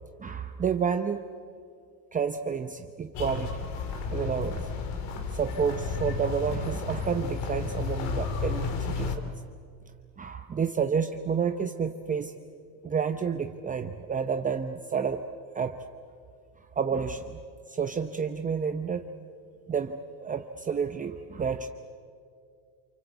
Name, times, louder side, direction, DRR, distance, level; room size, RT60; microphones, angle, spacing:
voice 1, 0.2-1.3 2.1-3.7 4.1-4.7 5.3-9.3 10.2-12.3 12.8-15.2 15.5-15.8 16.8-17.4 17.7-19.1 19.7-21.7, right 6 dB, 20° right, 7 dB, 0.8 m, -30 dB
sound 1, 3.1-9.2, left 5 dB, 65° left, 2.9 m, -32 dB
28.0 x 24.5 x 8.2 m, 2.3 s
supercardioid pair, 120°, 43 cm